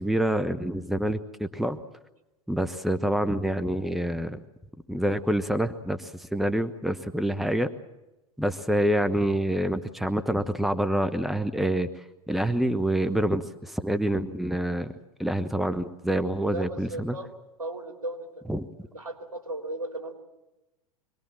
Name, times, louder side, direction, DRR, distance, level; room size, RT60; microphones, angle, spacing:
voice 1, 0.0-1.8 2.5-4.4 4.9-7.7 8.4-11.9 12.3-14.9 15.2-17.2 18.5-18.7, right 1 dB, ahead, 11 dB, 1.0 m, -27 dB
voice 2, 16.5-17.3 17.6-18.3 18.9-20.1, right 1 dB, 80° right, 3 dB, 3.6 m, -35 dB
25.5 x 19.5 x 7.5 m, 0.97 s
hypercardioid pair, 95°, 19 cm